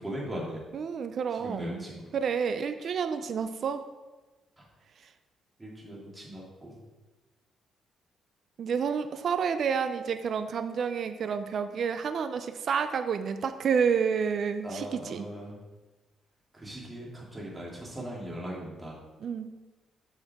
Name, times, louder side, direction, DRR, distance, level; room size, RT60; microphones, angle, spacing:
voice 1, 0.0-0.7 1.3-2.1 4.6-4.7 5.6-6.8 14.6-15.6 16.5-19.0, equal, 15° right, -4 dB, 2.8 m, -39 dB
voice 2, 0.7-1.8 2.1-3.9 5.0-5.1 8.6-15.3 19.2-19.5, right 6 dB, 55° right, 9 dB, 0.5 m, -29 dB
8.0 x 6.5 x 3.6 m, 1.2 s
cardioid pair, 90°, 0 cm